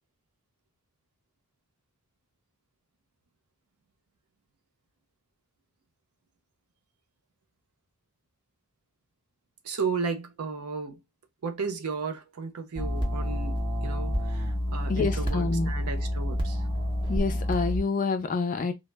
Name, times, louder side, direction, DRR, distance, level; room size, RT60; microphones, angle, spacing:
voice 1, 9.6-11.0 11.4-16.7, right 5 dB, 80° right, 0.5 m, -34 dB
sound 1, 12.8-17.8, equal, 20° right, 0.5 m, -29 dB
voice 2, 14.9-15.7 17.1-18.7, left 4 dB, 35° left, 0.3 m, -27 dB
2.0 x 2.0 x 3.1 m
head